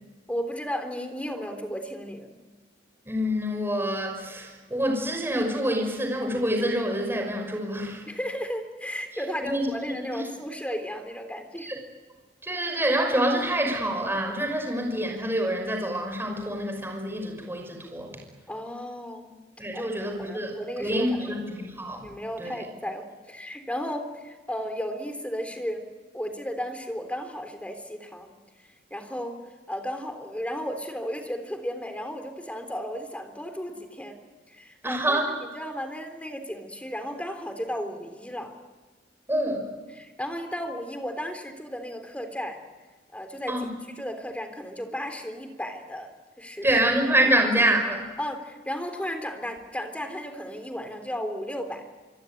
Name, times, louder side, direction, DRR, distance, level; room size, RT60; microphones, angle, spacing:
voice 1, 0.3-2.4 8.1-11.7 18.5-19.3 19.7-21.4 22.0-25.8 26.1-28.4 28.9-34.2 34.5-38.5 39.9-42.6 43.1-43.7 44.0-46.1 46.4-46.8 48.2-51.8, equal, 10° left, 7 dB, 3.5 m, -34 dB
voice 2, 3.1-8.0 9.4-10.2 11.6-11.8 12.4-18.1 19.6-20.5 20.8-22.1 22.4-22.5 34.8-35.3 39.3-39.7 43.5-43.7 46.6-48.1, right 1 dB, 15° right, 2 dB, 5.9 m, -26 dB
25.0 x 25.0 x 9.4 m, 1.3 s
head